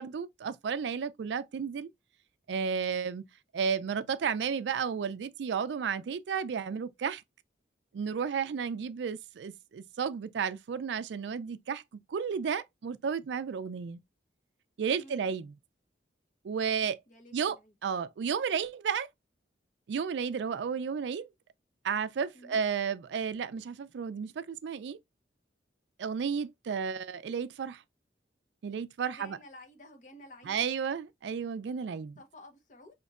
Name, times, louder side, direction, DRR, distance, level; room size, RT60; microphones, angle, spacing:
voice 1, 0.0-1.9 2.5-3.2 3.5-7.2 7.9-11.8 12.1-14.0 14.8-15.5 16.4-17.0 17.3-17.6 17.8-19.1 19.9-21.3 21.8-25.0 26.0-27.8 28.6-29.4 30.5-32.2, right 6 dB, 75° right, 0.4 m, -32 dB
voice 2, 14.9-15.3 17.1-17.7 22.3-22.6 29.1-30.6 32.2-33.0, left 1 dB, 45° left, 0.9 m, -52 dB
5.2 x 2.9 x 2.4 m
head